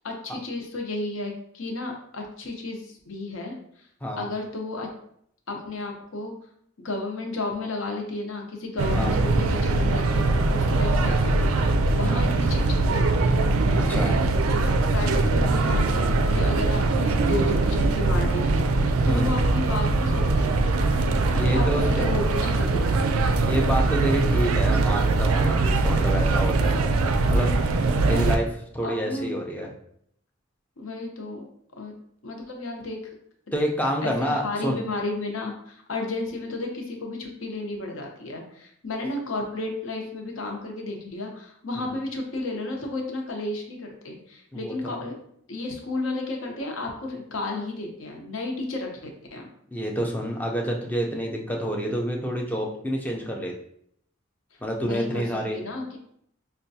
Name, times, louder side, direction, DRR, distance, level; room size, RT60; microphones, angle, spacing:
voice 1, 0.0-3.9 4.2-4.9 5.5-6.3 6.8-13.4 13.6-14.2 14.9-20.6 21.5-23.0 28.1-28.4 28.8-29.3 30.8-31.5 31.8-31.9 32.2-33.1 34.0-45.1 45.5-49.5 54.5-55.3 55.5-56.0, left 2 dB, 70° left, 1 dB, 0.8 m, -33 dB
sound 1, 8.8-28.4, right 3 dB, 90° right, 0.4 m, -22 dB
voice 2, 11.9-12.2 13.9-14.1 19.1-19.3 21.3-22.2 23.5-26.8 27.2-27.5 28.1-28.4 28.7-29.7 33.5-34.8 41.8-41.9 44.5-44.9 49.7-53.5 54.6-55.6, equal, 10° left, 0 dB, 0.4 m, -28 dB
5.5 x 2.2 x 2.7 m, 0.70 s
head